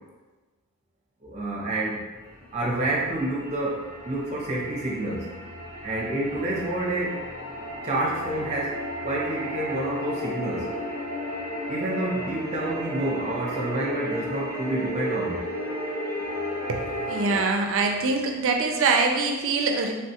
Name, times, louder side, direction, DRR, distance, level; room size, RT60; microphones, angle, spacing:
voice 1, 1.2-2.0 2.5-5.3 5.8-7.2 7.8-8.8 9.0-10.7 11.7-15.4, right 1 dB, 30° right, -4 dB, 0.7 m, -28 dB
sound 1, 2.1-17.4, equal, 75° left, 0.6 m, -34 dB
voice 2, 16.7-19.9, right 4 dB, 60° right, 3 dB, 0.4 m, -24 dB
3.4 x 2.3 x 2.7 m, 1.2 s
head